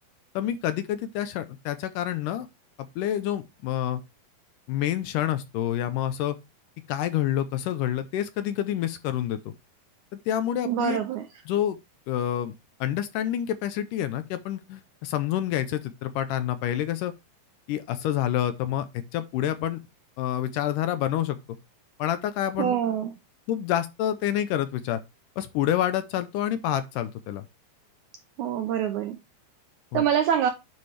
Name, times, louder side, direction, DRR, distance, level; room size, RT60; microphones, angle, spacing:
voice 1, 0.4-2.5 3.0-4.0 4.7-6.4 6.9-9.5 10.3-11.0 11.5-11.8 12.1-12.6 12.8-17.1 17.7-19.8 20.2-21.4 22.0-22.8 23.5-25.0 25.4-27.4 29.9-30.0, left 11 dB, 80° left, 2.1 m, -28 dB
voice 2, 10.7-11.3 22.6-23.1 28.4-29.2 29.9-30.5, right 9 dB, 80° right, 1.7 m, -25 dB
9.6 x 4.4 x 3.3 m
omnidirectional pair, 4.1 m